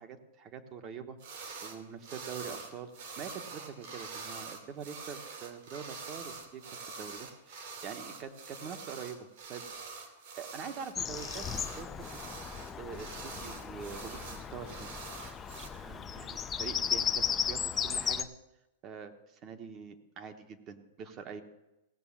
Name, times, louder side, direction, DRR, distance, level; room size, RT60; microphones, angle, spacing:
voice 1, 0.0-9.6 10.4-12.2 12.8-15.4 15.7-18.3 18.8-21.4, right 6 dB, 30° right, 8 dB, 1.0 m, -45 dB
sound 1, 1.2-1.8 2.0-15.7, right 4 dB, 60° right, 2.2 m, -45 dB
Bird vocalization bird call bird song, 11.0-18.2, left 7 dB, 15° left, 0.4 m, -35 dB
16.5 x 6.1 x 7.3 m, 0.97 s
supercardioid pair, 155°, 0 cm